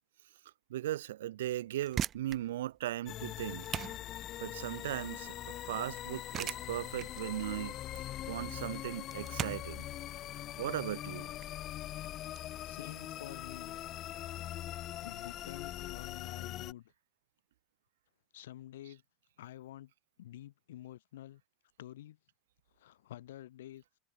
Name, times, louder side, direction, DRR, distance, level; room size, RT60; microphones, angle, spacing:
voice 1, 0.7-3.7 4.4-7.8 8.3-9.9 10.6-11.3, right 13 dB, 80° right, 1.4 m, -38 dB
sound 1, 1.6-12.4, right 10 dB, 40° right, 2.0 m, -42 dB
sound 2, 3.1-16.7, left 13 dB, 45° left, 4.0 m, -42 dB
voice 2, 12.6-13.8 14.5-14.6 15.0-16.9 18.3-19.0 19.4-19.9 20.2-21.4 21.8-22.2 22.8-23.8, left 13 dB, 80° left, 2.4 m, -49 dB
hypercardioid pair, 100°, 0 cm